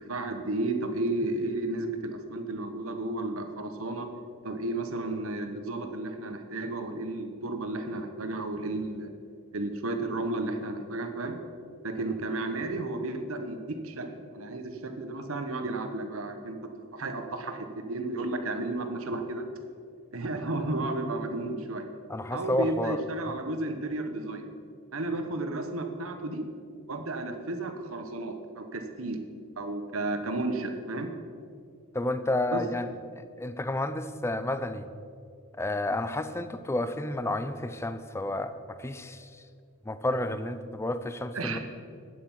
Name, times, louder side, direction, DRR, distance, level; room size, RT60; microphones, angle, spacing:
voice 1, 0.0-4.1 4.4-9.1 9.5-11.4 11.8-16.6 16.9-19.5 20.1-21.9 22.3-24.5 24.9-26.4 26.9-29.2 29.6-31.1 32.5-32.6 41.3-41.6, right 2 dB, 70° right, 7 dB, 1.1 m, -33 dB
voice 2, 22.1-23.0 31.9-32.9 33.2-34.9 35.6-39.3 39.9-41.6, left 1 dB, 10° left, 11 dB, 0.5 m, -31 dB
11.5 x 9.3 x 5.6 m, 2.3 s
head